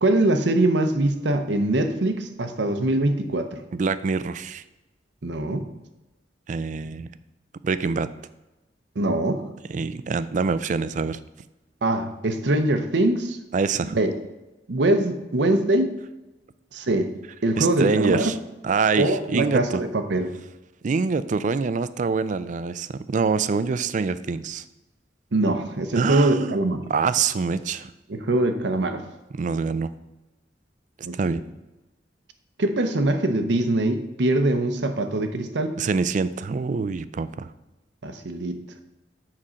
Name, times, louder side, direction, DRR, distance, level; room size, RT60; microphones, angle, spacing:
voice 1, 0.0-3.6 5.2-5.7 9.0-9.4 11.8-13.4 13.8-14.1 14.7-16.0 16.7-17.1 17.4-18.3 19.0-20.3 25.3-26.8 28.1-29.0 31.0-31.4 32.6-35.8 38.0-38.6, right 1 dB, 70° right, 7 dB, 0.8 m, -23 dB
voice 2, 3.7-4.6 6.5-7.1 7.6-8.1 9.7-11.2 13.5-14.0 17.6-18.4 18.6-19.8 20.8-24.6 25.9-26.6 26.9-27.9 29.4-29.9 31.1-31.4 35.8-37.5, right 4 dB, 45° right, 14 dB, 0.4 m, -25 dB
7.5 x 4.2 x 6.3 m, 1.0 s
head